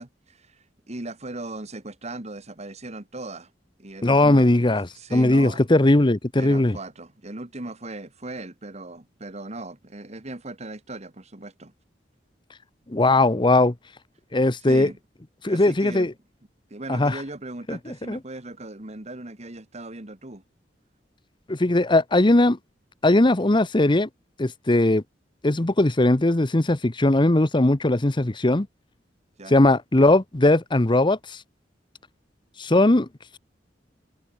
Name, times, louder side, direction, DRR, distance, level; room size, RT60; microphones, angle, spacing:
voice 1, 0.0-3.5 3.8-5.6 6.4-11.7 14.6-15.0 15.5-16.1 16.7-20.4 29.4-29.6, right 2 dB, 40° right, 2.0 m, -38 dB
voice 2, 4.0-6.8 12.9-13.7 14.3-14.9 15.4-16.1 16.9-17.2 17.7-17.8 18.1-18.2 21.5-22.6 23.0-24.1 24.4-25.0 25.4-28.7 29.5-31.4 32.6-33.1, left 2 dB, 25° left, 0.9 m, -19 dB
head